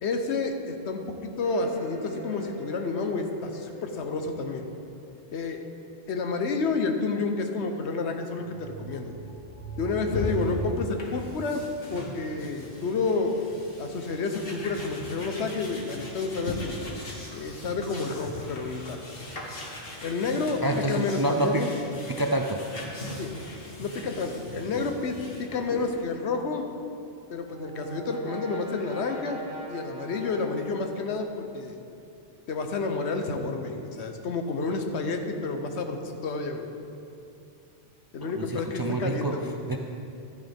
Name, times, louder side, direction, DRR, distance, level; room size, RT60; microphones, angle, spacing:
voice 1, 0.0-4.7 5.3-5.6 6.1-9.1 9.8-11.6 11.9-13.3 13.8-16.8 17.3-19.0 20.0-20.6 20.9-21.7 23.2-23.3 23.8-26.7 27.3-29.4 29.7-31.8 32.5-36.7 38.1-39.6, left 4 dB, 85° left, 5 dB, 1.1 m, -30 dB
sound 1, 1.4-5.7 8.3-10.5, right 1 dB, 40° left, 3.1 m, -43 dB
sound 2, 10.1-26.0, left 1 dB, 60° left, 1.6 m, -39 dB
voice 2, 20.6-21.6 22.1-22.6 38.2-39.3 39.7-39.8, right 2 dB, 35° right, 3 dB, 0.3 m, -27 dB
Brass instrument, 26.9-31.7, right 2 dB, 55° right, 2.7 m, -43 dB
12.5 x 9.5 x 3.5 m, 2.7 s
omnidirectional pair, 1.1 m